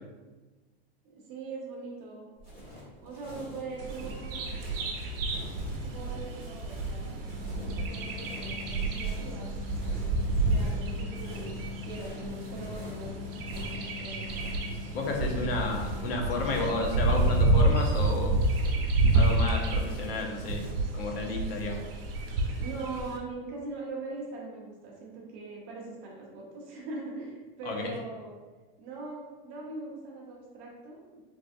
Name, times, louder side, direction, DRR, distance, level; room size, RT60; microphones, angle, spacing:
voice 1, 1.3-2.3 3.0-4.6 5.8-7.2 7.8-9.5 10.4-11.6 11.8-13.1 13.5-14.3 22.6-28.4 28.8-31.2, right 3 dB, 30° right, -3 dB, 0.5 m, -41 dB
sound 1, 2.4-20.8, equal, 15° left, 1.3 m, -45 dB
Bird vocalization bird call bird song, 3.8-23.2, right 2 dB, 70° right, 0.7 m, -29 dB
sound 2, 7.3-16.9, left 4 dB, 35° left, 0.7 m, -42 dB
voice 2, 14.9-18.4 19.1-20.6 20.9-21.8 27.7-27.9, left 2 dB, 80° left, 1 dB, 0.8 m, -31 dB
3.4 x 2.5 x 2.5 m, 1.3 s
supercardioid pair, 170°, 29 cm